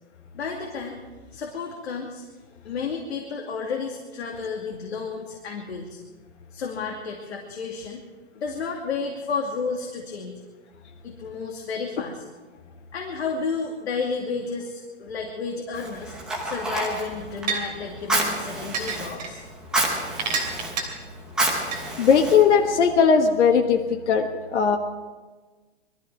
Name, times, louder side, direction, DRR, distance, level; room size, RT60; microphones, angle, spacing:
voice 1, 0.3-1.0 1.3-2.2 2.6-6.0 6.5-8.0 8.3-10.3 11.0-12.2 12.9-16.1 16.4-19.4, left 5 dB, 70° left, 0 dB, 2.5 m, -31 dB
Fire, 15.7-22.9, right 1 dB, ahead, 1.0 m, -30 dB
sound 1, 16.5-16.6 17.5-17.6 18.7-19.3 20.2-20.8 21.7-21.8, right 5 dB, 40° right, 3.1 m, -27 dB
voice 2, 22.0-23.8 24.1-24.8, left 6 dB, 90° left, 3 dB, 1.4 m, -18 dB
21.5 x 14.0 x 4.7 m, 1.3 s
hypercardioid pair, 180°, 34 cm